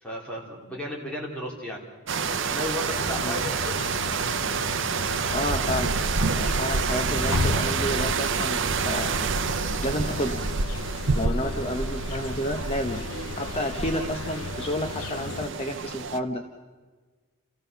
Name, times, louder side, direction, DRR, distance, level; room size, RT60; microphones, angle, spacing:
voice 1, 0.0-1.8 2.3-3.7 11.2-11.5, left 1 dB, 5° left, -3 dB, 3.3 m, -34 dB
sound 1, 2.1-16.2, right 5 dB, 55° right, 0.7 m, -28 dB
sound 2, 2.8-15.5, left 4 dB, 80° left, 0.6 m, -36 dB
voice 2, 5.3-5.9 6.2-9.2 9.8-10.4 11.1-13.1 13.3-16.4, left 1 dB, 25° left, 5 dB, 0.8 m, -30 dB
28.5 x 15.0 x 6.7 m, 1.4 s
head